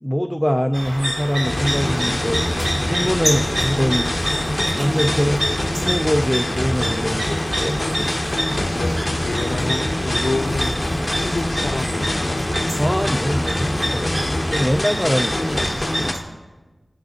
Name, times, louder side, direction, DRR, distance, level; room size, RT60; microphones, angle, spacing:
voice 1, 0.0-4.1 4.8-7.8 12.8-15.7, equal, 5° left, 6 dB, 0.4 m, -23 dB
sound 1, 0.7-12.6, equal, 30° right, 3.6 m, -39 dB
sound 2, 0.7-16.2, equal, 60° right, 2.7 m, -27 dB
sound 3, 1.4-16.1, left 1 dB, 30° left, 0.9 m, -25 dB
voice 2, 9.2-10.8 11.1-12.4, left 2 dB, 80° left, 5 dB, 0.5 m, -28 dB
20.5 x 9.3 x 2.8 m, 1.2 s
wide cardioid pair, 65°, 0 cm